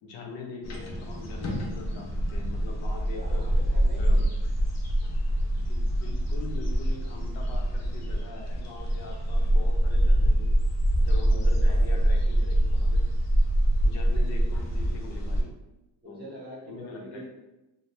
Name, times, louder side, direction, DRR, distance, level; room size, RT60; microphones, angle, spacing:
voice 1, 0.0-3.4 3.9-4.3 5.6-10.5 11.0-13.1 13.8-15.5 16.0-16.4 16.7-17.2, left 3 dB, 80° left, 1 dB, 0.7 m, -43 dB
sound 1, 0.6-15.4, right 1 dB, 40° left, 0.4 m, -25 dB
voice 2, 3.1-4.2 11.3-12.0 16.0-17.2, right 1 dB, 25° right, -5 dB, 0.8 m, -44 dB
2.5 x 2.1 x 3.2 m, 0.99 s
cardioid pair, 175°, 45 cm